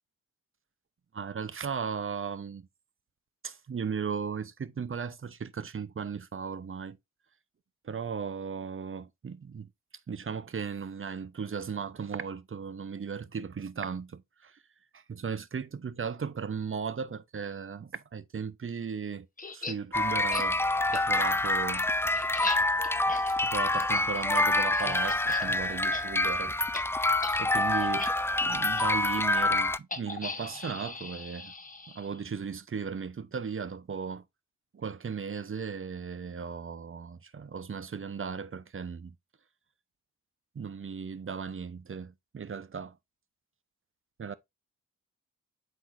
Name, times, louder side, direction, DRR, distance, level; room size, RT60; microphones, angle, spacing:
voice 1, 1.1-2.7 3.4-7.0 7.8-9.7 10.1-14.6 14.9-21.9 23.1-26.6 27.4-31.5 31.9-34.3 34.7-39.1 40.5-43.0 44.2-44.3, right 6 dB, 40° right, 0.8 m, -36 dB
sound 1, 19.4-19.8 20.3-20.5 20.9-21.0 21.4-25.5 25.8-26.0 26.3-26.4 26.7-26.8 27.2-27.4 27.8-28.1 28.8-28.9 29.9-32.3, left 3 dB, 25° left, 1.1 m, -39 dB
sound 2, 19.9-29.8, left 2 dB, 10° left, 0.4 m, -27 dB
7.7 x 4.7 x 2.6 m
cardioid pair, 60°, 33 cm